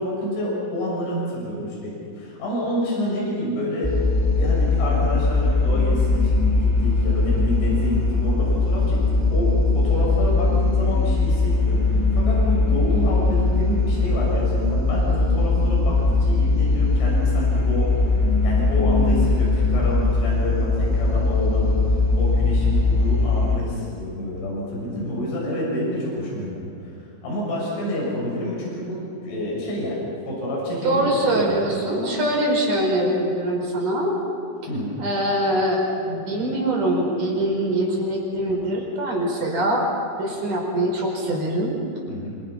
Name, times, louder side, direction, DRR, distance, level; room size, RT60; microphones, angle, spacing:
voice 1, 0.0-4.0 4.4-18.1 18.4-21.8 22.2-26.7 27.2-32.1 34.7-34.9 42.1-42.3, equal, 80° left, -4 dB, 9.2 m, -28 dB
sound 1, 3.8-23.6, left 3 dB, 5° left, 1.3 m, -20 dB
voice 2, 30.8-34.1 35.0-35.8 36.1-39.9 40.2-41.8, right 1 dB, 45° right, -1 dB, 6.2 m, -23 dB
27.5 x 25.5 x 5.9 m, 2.5 s
omnidirectional pair, 5.3 m